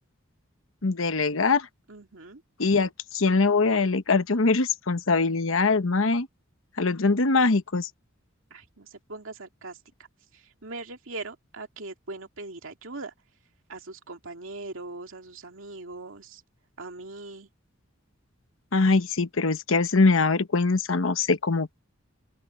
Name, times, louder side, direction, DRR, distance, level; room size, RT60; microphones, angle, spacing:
voice 1, 0.8-1.7 2.6-6.3 6.8-7.9 18.7-21.8, left 3 dB, 70° left, 1.1 m, -23 dB
voice 2, 1.9-2.4 8.5-9.8 10.3-13.1 13.7-16.4 16.8-17.5, right 3 dB, 70° right, 2.5 m, -40 dB
open air
head